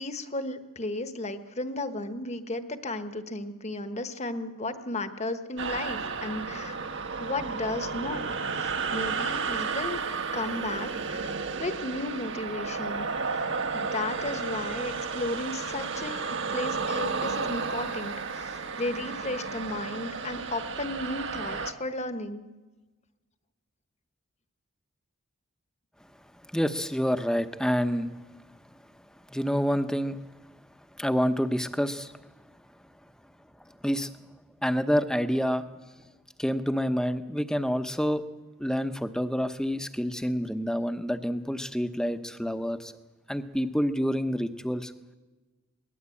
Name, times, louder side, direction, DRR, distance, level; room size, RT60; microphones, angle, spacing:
voice 1, 0.0-6.8 7.2-8.3 8.6-10.0 10.3-11.3 11.6-13.1 13.7-22.5, left 2 dB, 30° left, 9 dB, 1.3 m, -34 dB
sound 1, 5.6-21.7, right 5 dB, 60° right, 1.5 m, -32 dB
voice 2, 26.5-28.1 29.3-30.2 31.0-32.1 33.8-34.1 34.6-35.7 36.4-38.2 38.6-42.9 43.3-44.9, equal, 5° left, 9 dB, 0.9 m, -27 dB
22.5 x 19.0 x 8.5 m, 1.2 s
head